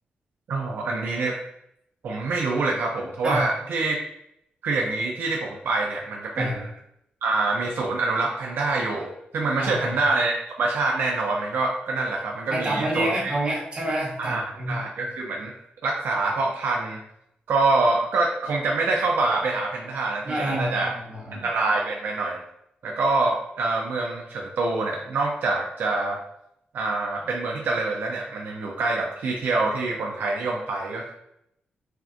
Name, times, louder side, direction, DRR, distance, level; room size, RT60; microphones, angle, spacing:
voice 1, 0.5-1.4 2.0-4.0 4.6-6.7 7.2-13.3 14.2-17.0 17.5-20.9 21.3-22.4 22.8-26.2 26.7-31.1, right 3 dB, 75° right, 0 dB, 0.5 m, -26 dB
voice 2, 12.5-14.8 20.2-21.4, right 1 dB, 30° right, -3 dB, 1.4 m, -28 dB
5.8 x 2.5 x 2.6 m, 0.77 s
wide cardioid pair, 140°, 3 cm